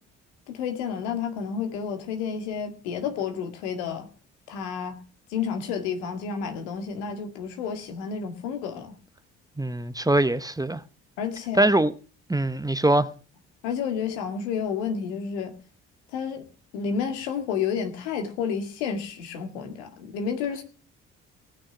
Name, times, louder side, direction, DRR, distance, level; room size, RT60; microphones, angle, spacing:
voice 1, 0.5-4.1 4.5-5.0 5.3-9.0 11.2-11.7 13.6-15.5 16.1-16.4 16.7-20.6, left 6 dB, 80° left, 2.0 m, -30 dB
voice 2, 9.6-10.8 11.6-11.9 12.3-13.1, right 1 dB, 10° right, 0.9 m, -22 dB
18.5 x 6.3 x 7.1 m
hypercardioid pair, 50°, 35 cm